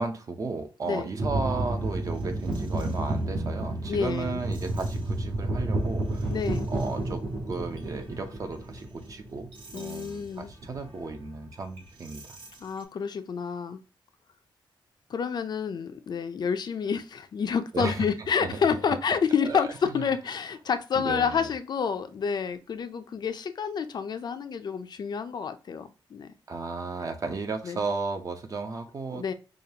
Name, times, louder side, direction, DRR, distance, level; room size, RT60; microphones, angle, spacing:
voice 1, 0.0-6.3 6.7-12.4 17.7-18.1 18.4-18.6 19.5-20.0 20.9-21.5 26.5-29.3, right 4 dB, 40° right, 6 dB, 0.7 m, -34 dB
sound 1, 1.2-12.8, right 2 dB, 70° right, 1.8 m, -31 dB
voice 2, 3.9-4.4 6.3-6.7 9.7-10.5 12.6-13.8 15.1-26.3 27.6-27.8 29.1-29.3, left 6 dB, 55° left, 9 dB, 0.4 m, -29 dB
5.1 x 2.4 x 2.8 m, 0.32 s
wide cardioid pair, 170°, 9 cm